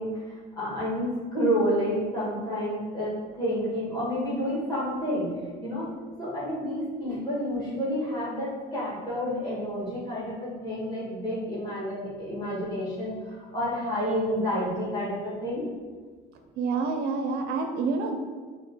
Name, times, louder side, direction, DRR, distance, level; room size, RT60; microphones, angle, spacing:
voice 1, 0.0-3.1 3.4-5.3 5.6-5.9 6.2-15.6, equal, 20° left, -8 dB, 1.5 m, -29 dB
voice 2, 16.6-18.2, right 4 dB, 65° right, 5 dB, 0.4 m, -28 dB
3.7 x 2.7 x 3.8 m, 1.5 s
cardioid pair, 165°, 18 cm